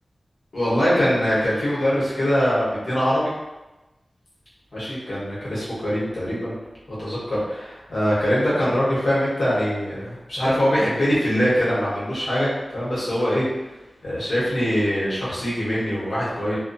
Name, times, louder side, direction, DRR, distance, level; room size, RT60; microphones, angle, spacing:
voice 1, 0.5-3.3 4.7-6.5 7.0-13.4 14.0-16.6, equal, 85° left, -9 dB, 1.0 m, -23 dB
2.2 x 2.2 x 2.5 m, 1.0 s
wide cardioid pair, 55°, 0 cm